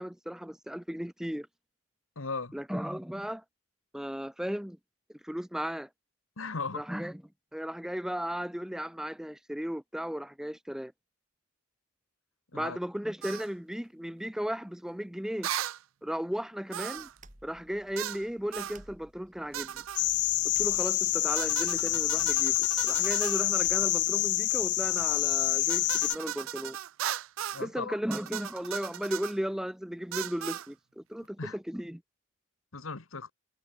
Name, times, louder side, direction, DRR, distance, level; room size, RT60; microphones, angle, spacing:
voice 1, 0.0-1.5 2.5-3.4 3.9-4.8 5.1-5.9 6.7-7.2 7.5-10.9 12.5-15.5 16.0-17.1 17.4-19.8 20.6-26.8 27.6-32.0, equal, ahead, 0.5 m, -35 dB
voice 2, 2.1-2.5 6.4-6.9 12.5-12.8 27.5-28.0 31.4-31.6 32.7-33.3, left 4 dB, 85° left, 1.6 m, -37 dB
sound 1, 13.2-13.5 15.4-15.8 16.7-17.2 18.0-18.2 18.5-18.8 19.5-20.0 21.4-23.5 25.7-27.7 28.1-29.4 30.1-30.7, right 11 dB, 80° right, 0.4 m, -37 dB
sound 2, 17.0-25.5, right 1 dB, 35° right, 6.3 m, -57 dB
sound 3, 20.0-26.2, left 17 dB, 55° left, 0.5 m, -27 dB
head